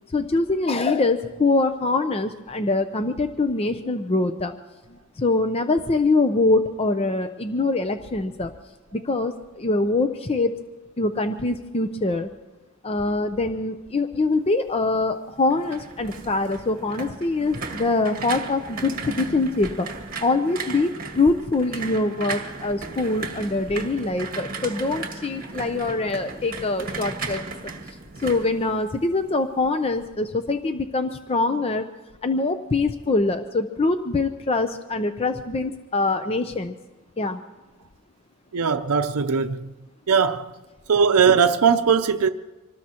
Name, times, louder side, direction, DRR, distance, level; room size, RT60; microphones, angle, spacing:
voice 1, 0.1-4.5 5.2-8.5 8.9-10.5 11.0-12.3 12.8-19.9 20.2-27.5 27.9-31.8 32.2-36.8 37.2-37.4, left 3 dB, 25° left, 0.5 m, -24 dB
sound 1, 15.3-29.3 29.7-30.0, right 4 dB, 40° right, 1.9 m, -35 dB
voice 2, 38.5-39.7 40.1-40.5 40.9-42.3, right 6 dB, 80° right, 0.6 m, -19 dB
25.5 x 19.0 x 2.9 m
head